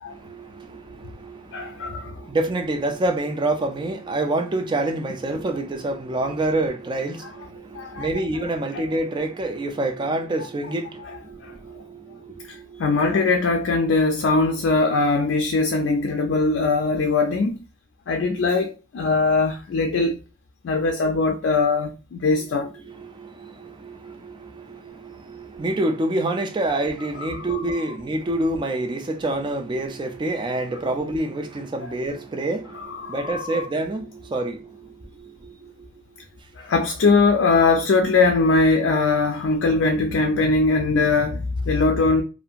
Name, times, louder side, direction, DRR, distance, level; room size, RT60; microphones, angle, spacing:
voice 1, 0.1-13.0 22.8-35.9, right 2 dB, 25° right, 0.3 m, -27 dB
voice 2, 1.5-2.3 5.3-5.4 7.7-8.1 8.3-8.4 8.7-8.8 11.0-11.5 12.8-17.6 18.1-20.2 20.6-22.7 27.2-27.9 32.7-33.7 36.6-42.2, left 3 dB, 75° left, 0.4 m, -21 dB
2.7 x 2.5 x 2.3 m
head